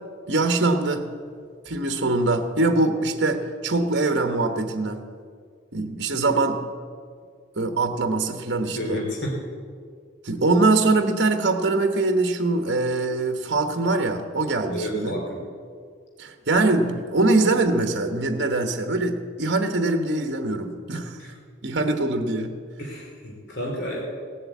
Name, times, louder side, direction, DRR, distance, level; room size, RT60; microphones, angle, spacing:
voice 1, 0.3-1.1 1.7-5.0 5.7-6.6 7.6-9.0 10.2-15.2 16.2-21.3 21.6-22.5, right 2 dB, 55° right, 6 dB, 1.1 m, -23 dB
voice 2, 8.7-9.4 14.7-15.4 21.2-21.3 22.8-24.0, equal, 55° left, -1 dB, 2.6 m, -30 dB
17.0 x 7.9 x 8.3 m, 2.1 s
head